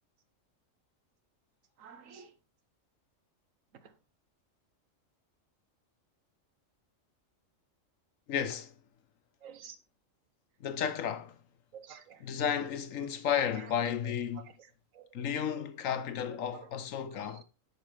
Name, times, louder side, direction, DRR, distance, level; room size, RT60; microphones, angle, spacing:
voice 1, 1.8-2.3 3.8-3.9 9.4-9.8 11.7-12.2 13.5-13.7 14.0-14.1 14.9-15.1 16.5-16.7 17.0-17.4, right 7 dB, 80° right, 1.3 m, -50 dB
voice 2, 8.3-8.7 10.6-11.4 12.2-14.5 15.1-17.4, left 8 dB, 80° left, 1.2 m, -33 dB
10.0 x 5.1 x 3.3 m
omnidirectional pair, 1.3 m